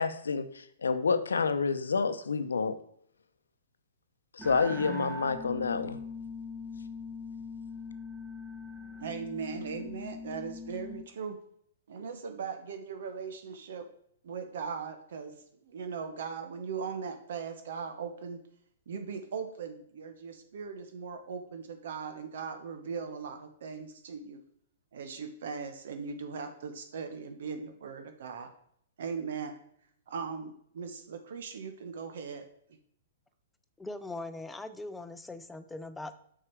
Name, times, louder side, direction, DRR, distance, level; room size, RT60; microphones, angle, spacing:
voice 1, 0.0-2.8 4.4-6.0, left 5 dB, 85° left, 11 dB, 0.7 m, -29 dB
sound 1, 4.4-11.0, left 3 dB, 15° right, 1.1 m, -41 dB
voice 2, 9.0-11.4 11.9-13.9 14.2-15.3 15.6-18.4 18.9-24.4 24.9-28.5 29.0-29.6 30.1-32.5, right 6 dB, 65° right, 7 dB, 1.0 m, -39 dB
voice 3, 33.8-36.2, left 2 dB, 5° left, 10 dB, 0.6 m, -41 dB
6.2 x 5.9 x 4.5 m, 0.68 s
hypercardioid pair, 125°, 0 cm